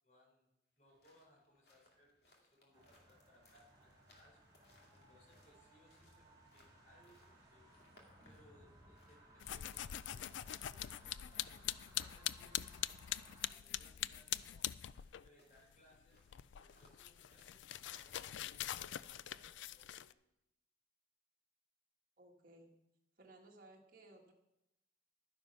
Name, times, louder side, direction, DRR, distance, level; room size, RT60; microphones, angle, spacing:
voice 1, 0.0-4.4 4.9-7.7 8.3-10.3 10.6-12.7 13.4-14.7 15.2-16.2 16.6-20.1, equal, 40° left, -2 dB, 4.3 m, -68 dB
sound 1, 0.8-18.2, left 2 dB, 55° left, 2.6 m, -69 dB
sound 2, 2.7-13.5, right 1 dB, 20° right, 4.1 m, -64 dB
sound 3, 9.4-15.3 15.6-20.1, left 12 dB, 75° left, 0.4 m, -43 dB
voice 2, 22.2-22.7 23.2-24.3, right 2 dB, 45° right, 0 dB, 1.8 m, -60 dB
11.5 x 9.6 x 5.7 m, 0.87 s
head